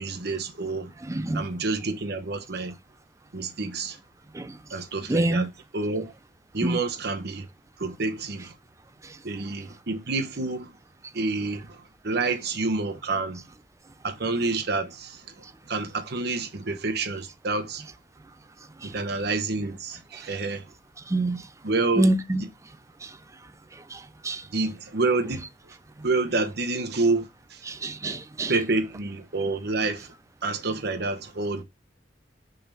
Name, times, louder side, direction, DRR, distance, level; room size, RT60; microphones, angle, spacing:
voice 1, 0.0-0.9 1.3-2.7 3.3-4.0 4.7-6.1 6.5-7.5 7.8-8.5 9.2-10.7 11.1-13.4 14.0-15.2 15.7-17.8 18.8-20.6 21.6-22.1 22.4-22.5 24.5-25.5 26.0-27.6 28.5-30.1 30.4-31.6, right 3 dB, 65° right, 1.0 m, -28 dB
voice 2, 1.1-1.4 4.3-4.5 5.1-5.5 6.6-6.8 21.1-21.4 22.0-22.4 23.9-24.0 24.2-24.4 27.7-28.5, right 1 dB, 15° right, 0.5 m, -25 dB
5.7 x 3.6 x 5.4 m
head